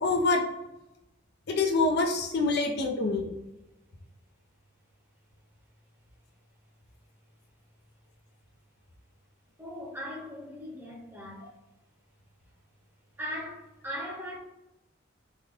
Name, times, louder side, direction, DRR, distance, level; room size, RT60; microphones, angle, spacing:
voice 1, 0.0-0.4 1.5-3.3, left 3 dB, 55° left, 2 dB, 0.5 m, -25 dB
voice 2, 9.6-11.5 13.2-14.4, equal, 10° right, -4 dB, 0.9 m, -39 dB
3.6 x 2.2 x 3.4 m, 0.94 s
head